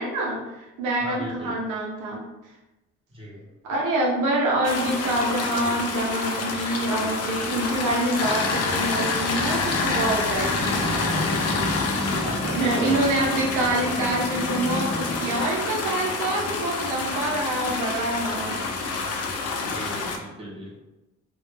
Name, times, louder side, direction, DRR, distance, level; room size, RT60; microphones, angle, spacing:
voice 1, 0.0-2.2 3.6-11.0 12.4-18.6, right 1 dB, 85° right, -2 dB, 0.6 m, -26 dB
voice 2, 1.0-1.6 3.1-3.4 11.0-11.5 12.2-13.0 19.7-20.8, equal, 20° right, -5 dB, 0.9 m, -36 dB
sound 1, 4.6-20.2, left 4 dB, 55° left, 0.5 m, -28 dB
sound 2, 10.3-15.6, left 1 dB, 10° left, 0.7 m, -32 dB
2.2 x 2.1 x 3.1 m, 0.99 s
cardioid pair, 90°, 30 cm